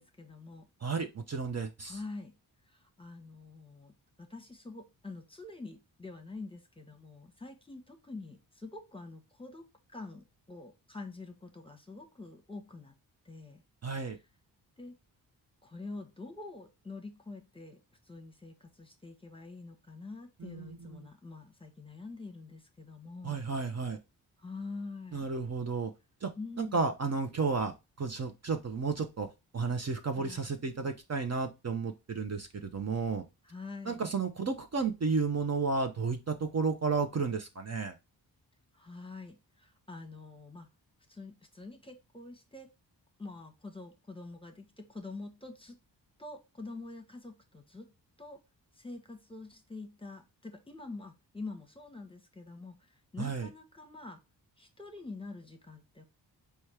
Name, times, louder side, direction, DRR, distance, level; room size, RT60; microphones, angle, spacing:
voice 1, 0.0-0.6 1.8-2.3 2.7-3.9 4.2-12.9 13.2-13.6 14.1-14.2 14.8-14.9 15.6-17.8 18.1-23.5 24.4-25.3 26.4-26.9 30.2-30.5 33.4-34.0 38.7-40.7 41.1-42.7 43.2-45.8 46.2-47.9 48.2-48.4 48.7-52.8 53.1-54.2 54.6-56.0, left 3 dB, 10° left, 5 dB, 1.0 m, -46 dB
voice 2, 0.8-2.0 13.8-14.2 20.4-21.0 23.2-24.0 25.1-25.9 26.2-26.3 26.6-27.7 28.0-29.3 29.5-33.2 33.8-37.9 53.2-53.5, right 4 dB, 35° right, 5 dB, 0.7 m, -32 dB
4.2 x 2.4 x 4.7 m, 0.24 s
supercardioid pair, 45°, 44 cm